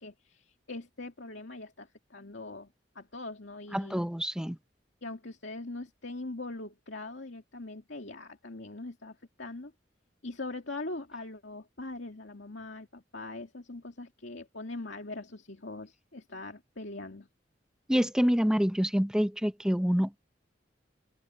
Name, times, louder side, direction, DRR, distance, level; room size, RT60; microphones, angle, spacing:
voice 1, 0.0-4.0 5.0-9.7 10.2-17.3, left 2 dB, 70° left, 2.6 m, -42 dB
voice 2, 3.7-4.6 17.9-20.2, equal, 5° right, 0.7 m, -27 dB
open air
head